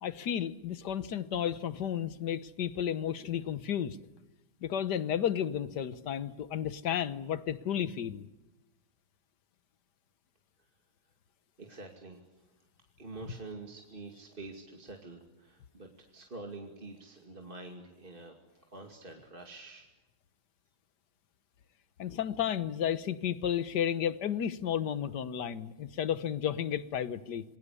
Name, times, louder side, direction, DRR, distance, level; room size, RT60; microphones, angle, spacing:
voice 1, 0.0-4.0 4.6-8.2 22.0-27.4, left 9 dB, 60° left, 14 dB, 1.6 m, -32 dB
voice 2, 11.6-12.2 13.0-19.9, right 3 dB, 25° right, 2 dB, 2.6 m, -47 dB
27.5 x 22.5 x 8.4 m, 1.0 s
omnidirectional pair, 2.1 m